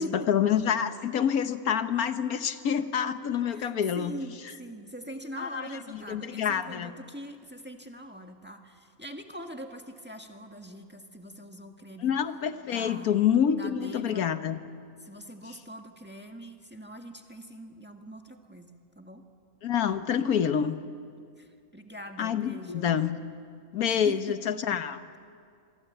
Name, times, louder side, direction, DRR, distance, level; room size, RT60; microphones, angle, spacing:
voice 1, 0.0-4.1 5.4-6.9 12.0-14.6 19.6-20.8 22.2-23.1 23.7-25.0, left 8 dB, 80° left, 10 dB, 1.5 m, -27 dB
voice 2, 3.5-12.1 12.7-13.1 13.5-14.3 15.0-19.2 21.4-22.9 23.9-24.4, equal, 5° right, 4 dB, 1.6 m, -42 dB
26.5 x 23.5 x 9.0 m, 2.3 s
omnidirectional pair, 1.5 m